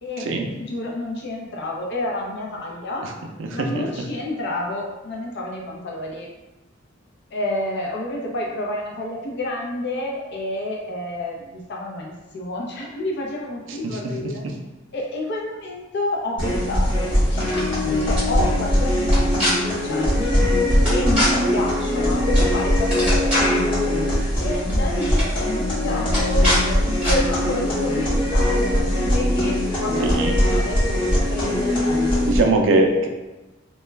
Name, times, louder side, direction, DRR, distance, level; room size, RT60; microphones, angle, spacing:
voice 1, 0.5-3.0 3.5-6.3 7.3-14.4 14.9-20.5 20.8-24.0 24.4-32.3 32.9-33.0, left 1 dB, 60° left, -1 dB, 0.6 m, -29 dB
voice 2, 3.4-3.9 13.7-13.8 30.0-30.3 32.2-33.1, right 2 dB, 65° right, 3 dB, 0.4 m, -21 dB
sound 1, 16.4-32.4, left 1 dB, 25° left, 0.9 m, -21 dB
sound 2, 17.3-17.8 18.2-18.3 19.0-19.5 20.8-21.3 22.3-22.5 22.8-23.6 24.6-24.7 25.0-25.3 26.1-26.6 27.0-27.2, left 1 dB, 5° right, 1.2 m, -23 dB
2.2 x 2.2 x 3.1 m, 1.1 s
head